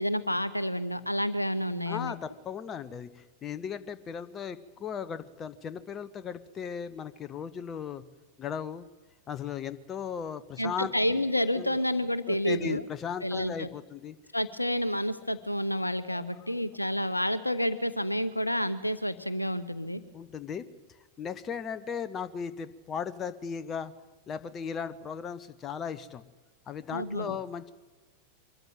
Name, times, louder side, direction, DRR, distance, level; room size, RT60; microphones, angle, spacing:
voice 1, 0.0-2.1 10.6-12.8 13.2-13.7 14.3-20.0 26.9-27.4, equal, 85° left, 14 dB, 0.8 m, -29 dB
voice 2, 1.9-8.0 8.4-8.9 9.3-10.9 11.5-11.8 12.3-14.2 16.1-16.5 20.1-20.7 21.2-23.9 24.3-26.2 26.7-27.7, left 7 dB, 25° left, 12 dB, 0.9 m, -37 dB
23.0 x 13.5 x 9.2 m, 1.2 s
figure-of-eight pair, 90°, 0 cm